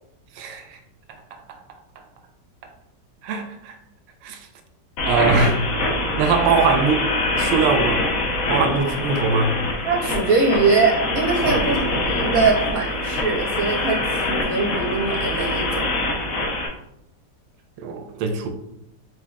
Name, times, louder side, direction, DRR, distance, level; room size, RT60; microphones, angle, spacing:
voice 1, 0.4-0.8 1.5-1.6 3.2-3.8 4.2-4.4 5.1-5.6 6.2-7.0 7.3-8.0 8.5-9.5 17.8-18.5, right 5 dB, 90° right, 6 dB, 1.3 m, -21 dB
sound 1, 5.0-16.7, left 2 dB, 60° left, 1.0 m, -24 dB
voice 2, 9.8-15.9, right 4 dB, 65° right, 0 dB, 1.0 m, -22 dB
4.6 x 4.0 x 2.2 m, 0.79 s
omnidirectional pair, 1.9 m